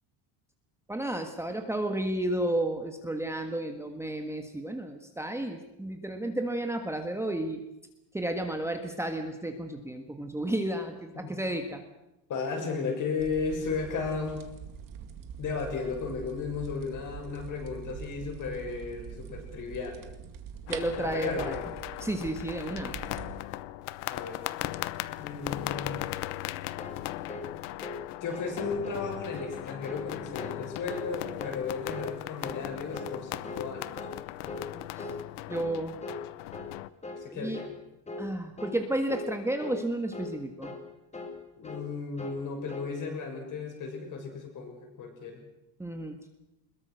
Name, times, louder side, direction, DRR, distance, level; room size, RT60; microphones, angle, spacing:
voice 1, 0.9-7.6 8.1-11.8 20.7-21.7 22.0-23.0 34.7-35.1 35.5-35.9 37.3-37.6 38.2-40.7 45.8-46.2, right 1 dB, 5° right, 5 dB, 1.5 m, -32 dB
voice 2, 12.3-14.5 15.4-20.1 21.0-21.7 24.1-24.4 25.2-26.0 28.2-34.0 37.2-37.7 41.6-45.4, left 5 dB, 40° left, 2 dB, 6.7 m, -35 dB
sound 1, 13.2-23.4, right 8 dB, 40° right, 2.2 m, -44 dB
sound 2, 20.7-36.9, left 17 dB, 85° left, 1.1 m, -38 dB
sound 3, 26.8-27.0 27.3-27.5 27.8-28.0 28.3-28.5 28.8-29.1 29.3-29.6 29.9-30.1 30.4-30.6 30.9-31.1 31.4-31.6 31.9-32.1 32.4-32.6 32.9-33.2 33.4-33.7 34.0-34.2 34.5-34.7 35.0-35.2 35.5-35.7 36.0-36.2 36.5-36.7 37.0-37.3 37.5-37.8 38.1-38.3 38.6-38.8 39.1-39.3 39.6-39.8 40.1-40.4 40.6-40.8 41.1-41.4 41.6-41.9 42.2-42.4 42.7-42.9, left 2 dB, 15° left, 2.5 m, -39 dB
22.5 x 21.5 x 6.4 m, 0.92 s
cardioid pair, 160°, 48 cm